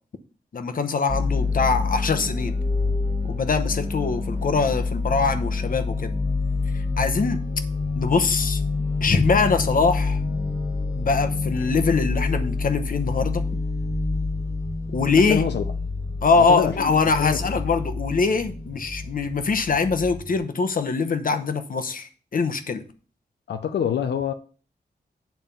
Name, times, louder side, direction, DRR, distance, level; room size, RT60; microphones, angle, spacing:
voice 1, 0.5-2.6 3.3-6.2 6.7-7.4 8.0-8.6 9.0-10.2 10.9-13.4 14.9-15.4 16.2-22.8, left 4 dB, 55° left, 0.9 m, -23 dB
sound 1, 1.1-20.4, left 3 dB, 15° right, 2.0 m, -27 dB
voice 2, 15.3-15.6 16.3-16.9 17.2-17.6 23.5-24.3, left 8 dB, 90° left, 0.6 m, -26 dB
9.2 x 3.7 x 6.9 m
wide cardioid pair, 115°, 17 cm